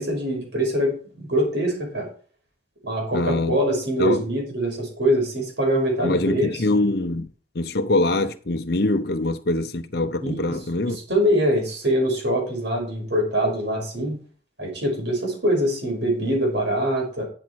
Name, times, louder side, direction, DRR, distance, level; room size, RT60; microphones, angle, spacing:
voice 1, 0.0-2.1 2.8-6.5 10.2-14.2 14.6-17.2, equal, 70° right, 5.6 m, -24 dB
voice 2, 3.1-3.6 4.0-4.2 6.0-7.3 7.5-11.0, left 2 dB, 55° left, 0.8 m, -23 dB
12.5 x 7.4 x 4.7 m
head